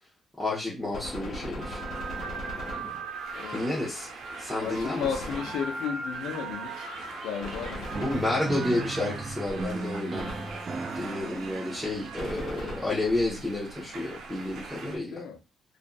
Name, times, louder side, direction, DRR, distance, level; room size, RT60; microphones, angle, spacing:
voice 1, 0.4-1.8 3.5-4.1 4.4-5.1 8.0-10.3 10.9-15.1, left 2 dB, ahead, 0.9 m, -30 dB
Gunshot gunfire, 0.9-3.4 5.0-6.0 7.4-8.8 10.2-11.0 12.2-13.3, left 1 dB, 55° left, 1.1 m, -39 dB
sound 1, 1.6-15.0, right 4 dB, 80° right, 0.6 m, -40 dB
voice 2, 3.3-3.8 4.6-6.9 7.2-8.2 8.5-8.8 14.8-15.4, left 7 dB, 85° left, 0.5 m, -35 dB
sound 2, 7.9-13.9, right 4 dB, 40° right, 0.3 m, -38 dB
2.6 x 2.4 x 2.3 m
cardioid pair, 90°, 0 cm